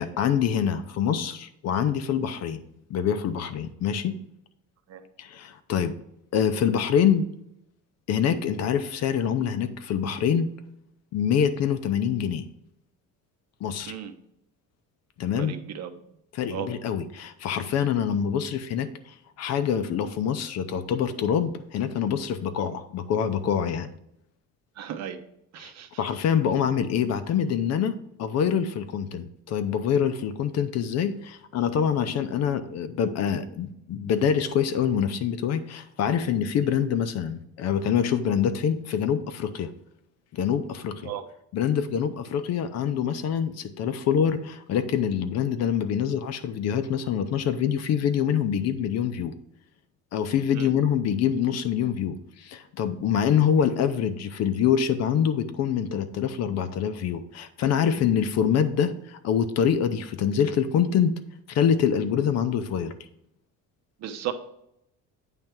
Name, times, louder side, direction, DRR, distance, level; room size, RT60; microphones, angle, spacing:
voice 1, 0.0-2.6 2.9-4.2 5.2-6.0 6.3-7.3 8.1-10.5 11.1-12.5 13.6-13.9 15.2-15.6 16.3-23.9 25.6-25.7 26.0-39.7 40.3-41.1 41.5-49.3 50.1-61.2 61.5-62.9, left 8 dB, 50° left, 11 dB, 0.6 m, -25 dB
voice 2, 15.4-15.9 16.5-16.7 24.8-25.2 25.5-25.9 41.1-41.2 50.5-50.7 64.0-64.3, right 10 dB, 55° right, 8 dB, 0.7 m, -34 dB
8.9 x 3.3 x 5.9 m, 0.78 s
cardioid pair, 170°, 33 cm